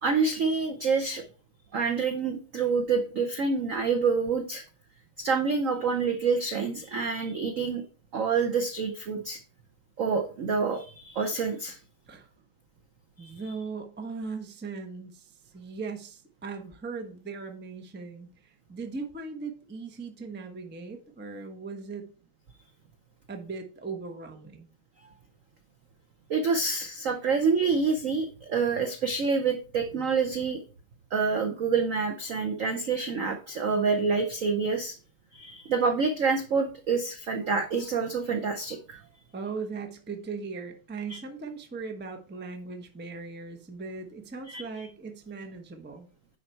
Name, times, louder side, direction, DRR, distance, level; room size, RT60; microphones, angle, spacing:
voice 1, 0.0-1.2 1.7-4.6 5.2-7.8 8.1-9.4 10.0-11.8 13.2-13.3 26.3-30.6 31.1-34.9 35.3-39.0 41.1-41.2 44.5-44.6, right 5 dB, 80° right, 6 dB, 0.7 m, -27 dB
voice 2, 13.2-22.1 23.3-24.7 39.3-46.1, right 4 dB, 15° right, 4 dB, 0.3 m, -39 dB
9.9 x 4.0 x 4.4 m, 0.38 s
omnidirectional pair, 2.4 m